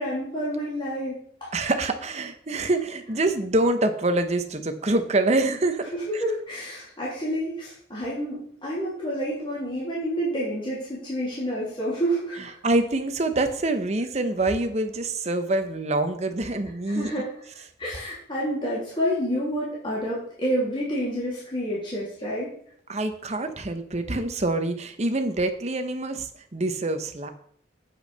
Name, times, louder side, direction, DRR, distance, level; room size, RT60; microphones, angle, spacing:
voice 1, 0.0-1.5 5.9-12.5 16.9-17.3 17.8-22.5, equal, 25° left, -7 dB, 3.1 m, -29 dB
voice 2, 1.5-6.2 12.6-17.1 22.9-27.3, right 2 dB, 35° right, 8 dB, 0.9 m, -25 dB
8.5 x 5.6 x 5.6 m, 0.63 s
head